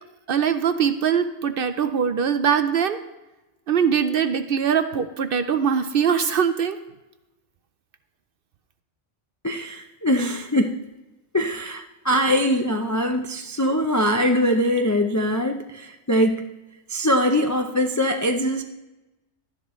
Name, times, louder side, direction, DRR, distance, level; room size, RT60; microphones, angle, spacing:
voice 1, 0.3-3.0 3.7-6.8, right 7 dB, 60° right, 10 dB, 0.7 m, -22 dB
voice 2, 9.4-10.8 11.3-16.5 16.9-18.6, equal, 30° left, 4 dB, 0.3 m, -22 dB
12.5 x 10.5 x 3.1 m, 1.0 s
omnidirectional pair, 1.3 m